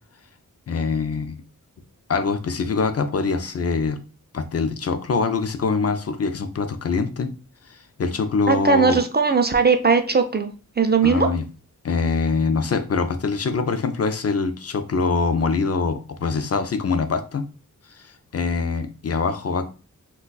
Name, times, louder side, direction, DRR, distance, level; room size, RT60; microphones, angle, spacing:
voice 1, 0.7-1.4 2.1-4.0 4.3-7.3 7.7-9.0 11.0-11.4 11.8-17.4 17.9-19.7, left 4 dB, 45° left, 8 dB, 0.4 m, -24 dB
voice 2, 8.5-11.3, right 5 dB, 30° right, 6 dB, 0.4 m, -19 dB
3.8 x 2.3 x 2.3 m, 0.35 s
wide cardioid pair, 70°, 34 cm